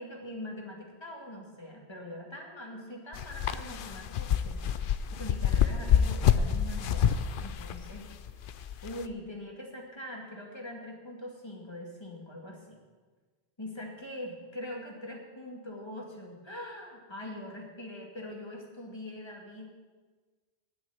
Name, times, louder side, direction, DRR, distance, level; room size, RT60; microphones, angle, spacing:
voice 1, 0.0-8.1 8.8-12.8 13.6-19.7, left 1 dB, 25° left, -1 dB, 2.3 m, -43 dB
sound 1, 3.1-9.1, left 8 dB, 60° left, 0.7 m, -27 dB
9.6 x 7.9 x 9.2 m, 1.4 s
omnidirectional pair, 1.1 m